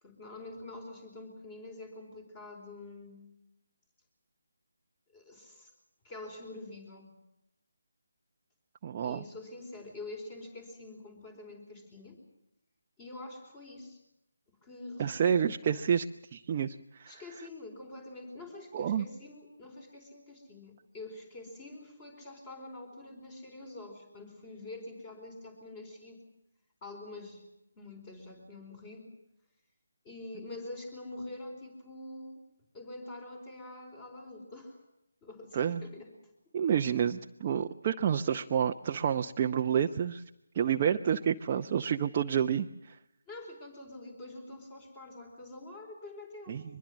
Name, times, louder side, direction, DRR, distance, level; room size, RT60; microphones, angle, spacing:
voice 1, 0.0-3.2 5.1-5.7 6.0-7.1 9.0-12.2 13.0-14.0 14.6-15.4 17.1-26.2 26.8-27.4 27.8-29.1 30.0-32.4 32.7-34.8 35.2-36.3 43.3-46.6, left 2 dB, 20° left, 5 dB, 4.4 m, -46 dB
voice 2, 8.8-9.2 15.0-16.1 16.3-17.2 18.7-19.0 35.5-35.8 36.5-40.2 40.5-43.0 46.5-46.6, right 8 dB, 30° right, 4 dB, 0.8 m, -29 dB
23.5 x 22.0 x 7.5 m, 0.81 s
figure-of-eight pair, 160°, 0 cm